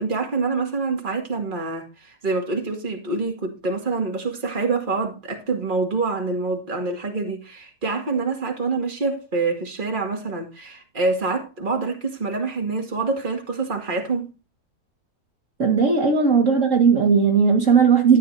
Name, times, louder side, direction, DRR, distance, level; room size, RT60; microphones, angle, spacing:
voice 1, 0.0-14.3, right 3 dB, 30° right, 2.3 m, -26 dB
voice 2, 15.6-18.2, right 5 dB, 50° right, 2.2 m, -17 dB
13.5 x 10.0 x 2.7 m
omnidirectional pair, 1.7 m